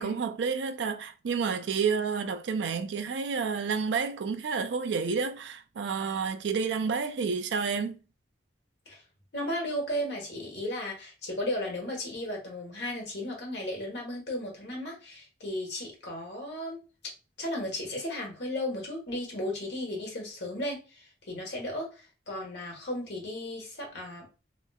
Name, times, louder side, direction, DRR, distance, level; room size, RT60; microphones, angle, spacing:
voice 1, 0.0-8.0, right 5 dB, 90° right, 0.4 m, -30 dB
voice 2, 9.3-16.8 17.4-24.4, left 1 dB, 75° left, 1.3 m, -35 dB
3.1 x 3.0 x 2.3 m
head